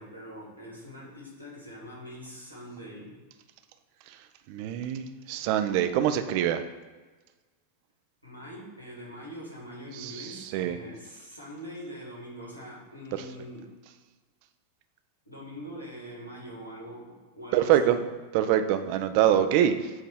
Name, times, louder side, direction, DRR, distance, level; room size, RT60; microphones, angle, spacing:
voice 1, 0.0-3.2 8.2-13.7 15.3-18.1, equal, 90° left, -4 dB, 1.8 m, -43 dB
voice 2, 4.5-6.6 10.0-10.8 17.5-18.0 18.3-19.9, right 10 dB, 45° right, 9 dB, 0.5 m, -25 dB
7.7 x 3.0 x 4.4 m, 1.3 s
figure-of-eight pair, 90°, 0 cm